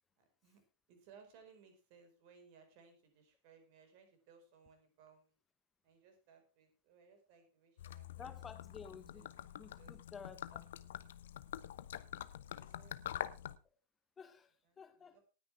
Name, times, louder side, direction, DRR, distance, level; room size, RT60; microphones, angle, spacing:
voice 1, 0.2-0.6 0.9-5.3 5.8-8.3 8.8-9.5 9.8-10.0 12.6-13.4 15.0-15.2, right 6 dB, 45° right, 7 dB, 4.5 m, -64 dB
Gurgling / Liquid, 7.8-13.6, left 11 dB, 60° left, 0.8 m, -46 dB
voice 2, 8.2-10.7 14.2-15.2, left 6 dB, 20° left, 11 dB, 1.1 m, -53 dB
18.5 x 9.9 x 3.4 m, 0.32 s
figure-of-eight pair, 90°, 0 cm